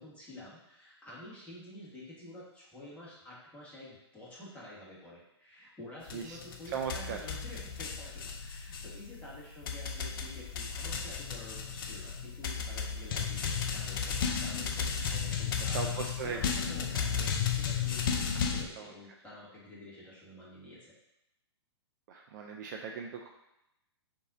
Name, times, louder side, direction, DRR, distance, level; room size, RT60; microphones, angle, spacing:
voice 1, 0.0-16.0 16.2-20.9, left 1 dB, 10° left, -8 dB, 1.4 m, -49 dB
sound 1, 6.1-18.7, left 7 dB, 50° left, 0.5 m, -34 dB
voice 2, 6.7-7.2 15.1-15.4 15.7-16.4 18.8-18.9 22.1-23.3, right 6 dB, 40° right, 2 dB, 0.4 m, -38 dB
4.0 x 2.7 x 3.7 m, 0.85 s
figure-of-eight pair, 120°, 14 cm